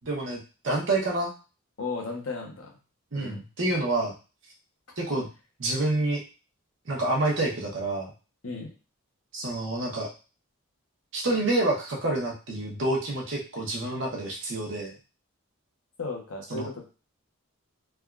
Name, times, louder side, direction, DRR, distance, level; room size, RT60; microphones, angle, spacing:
voice 1, 0.0-0.4 0.6-1.3 3.1-4.1 5.0-5.3 5.6-6.2 6.9-8.1 9.3-10.1 11.1-14.9 16.5-16.7, right 2 dB, 60° right, -1 dB, 0.8 m, -28 dB
voice 2, 1.8-2.7 3.1-3.4 8.4-8.7 16.0-16.9, left 3 dB, 75° left, 0 dB, 0.9 m, -35 dB
3.4 x 2.3 x 2.3 m, 0.33 s
head